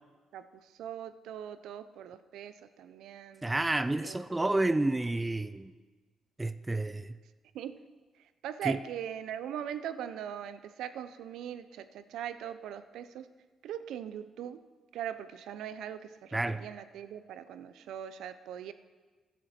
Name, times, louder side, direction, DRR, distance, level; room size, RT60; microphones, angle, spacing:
voice 1, 0.8-3.5 4.0-4.6 7.5-7.8 8.4-13.3 13.6-14.6 14.9-18.7, right 9 dB, 80° right, 12 dB, 0.6 m, -40 dB
voice 2, 3.4-5.7 6.4-7.2 8.6-8.8 16.3-16.7, right 2 dB, 15° right, 13 dB, 0.5 m, -30 dB
15.0 x 10.0 x 4.3 m, 1.3 s
cardioid pair, 90°, 0 cm